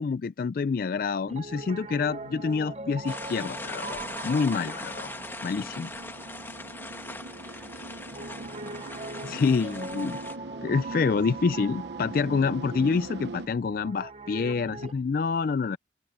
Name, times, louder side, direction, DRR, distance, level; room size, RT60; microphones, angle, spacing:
voice 1, 0.0-5.1 5.4-5.9 9.2-10.2 10.6-15.8, left 5 dB, 55° left, 0.3 m, -27 dB
Piano, 1.3-15.0, right 3 dB, 35° right, 1.0 m, -42 dB
sound 1, 1.8-13.5, right 2 dB, 80° right, 0.9 m, -42 dB
sound 2, 3.1-10.4, left 2 dB, 15° left, 1.7 m, -40 dB
voice 2, 6.9-9.7 10.0-10.1 10.9-11.4, right 1 dB, 5° right, 5.6 m, -58 dB
open air
head